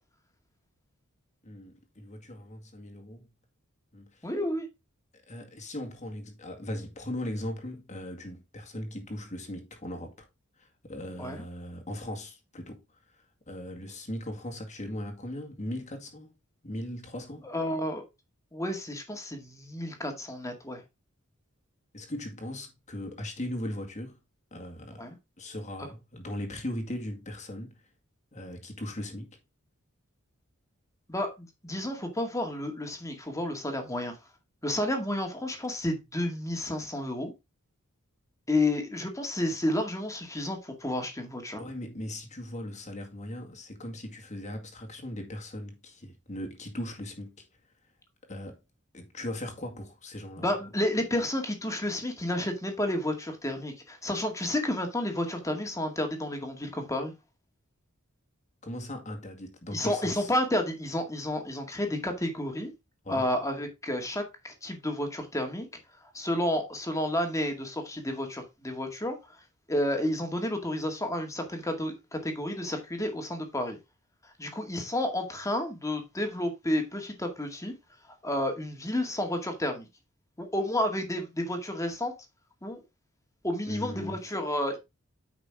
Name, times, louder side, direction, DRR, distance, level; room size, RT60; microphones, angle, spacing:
voice 1, 1.4-3.3 3.9-4.3 5.1-10.3 10.6-12.8 13.1-16.3 16.6-17.5 21.9-24.2 24.5-25.1 25.4-27.8 28.3-29.3 41.6-47.5 48.3-48.6 48.9-50.5 58.6-60.3 63.0-63.3 83.7-84.2, left 1 dB, 35° left, 2.1 m, -38 dB
voice 2, 4.2-4.7 11.2-11.4 17.4-18.0 18.5-20.8 25.0-25.2 31.1-34.2 34.6-37.3 38.5-41.6 50.4-57.1 59.7-62.7 63.1-65.7 66.1-69.2 69.7-73.8 74.4-77.7 78.2-79.9 80.4-82.1 82.6-82.8 83.4-84.8, left 1 dB, 15° left, 2.1 m, -31 dB
9.3 x 5.9 x 3.6 m
head